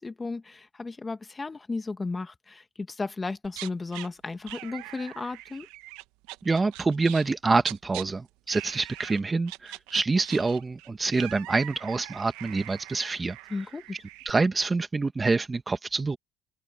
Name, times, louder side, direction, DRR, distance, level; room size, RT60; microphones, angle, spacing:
voice 1, 0.0-5.7 13.5-13.8, left 3 dB, 25° left, 1.7 m, -34 dB
sound 1, 3.4-4.1 4.5-7.3 7.6-8.0 8.5-9.2 9.5-14.3, right 19 dB, 85° right, 1.2 m, -42 dB
voice 2, 6.4-13.4 14.3-16.2, right 3 dB, 25° right, 1.8 m, -26 dB
open air
supercardioid pair, 75°, 0 cm